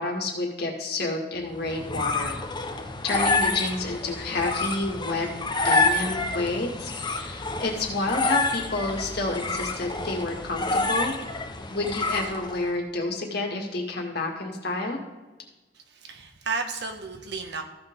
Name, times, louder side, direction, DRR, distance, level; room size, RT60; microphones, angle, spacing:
voice 1, 0.0-2.4 3.0-5.3 5.6-11.1 11.7-15.0, left 2 dB, 60° left, 1 dB, 1.9 m, -29 dB
sound 1, 1.5-12.7, left 3 dB, 25° left, 0.9 m, -28 dB
voice 2, 15.7-17.6, right 4 dB, 65° right, 5 dB, 1.3 m, -33 dB
14.5 x 5.9 x 3.7 m, 1.2 s
head